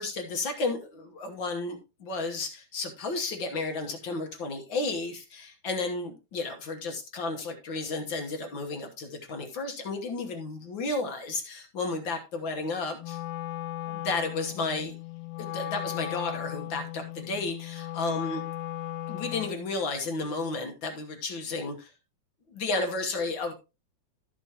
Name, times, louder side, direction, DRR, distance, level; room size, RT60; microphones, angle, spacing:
voice 1, 0.0-13.2 13.9-14.9 15.4-18.4 19.1-21.9 22.5-23.5, left 3 dB, 55° left, 4 dB, 1.4 m, -32 dB
Wind instrument woodwind instrument, 13.0-19.7, left 14 dB, 75° left, 1.3 m, -37 dB
12.5 x 7.0 x 2.9 m, 0.27 s
omnidirectional pair, 3.6 m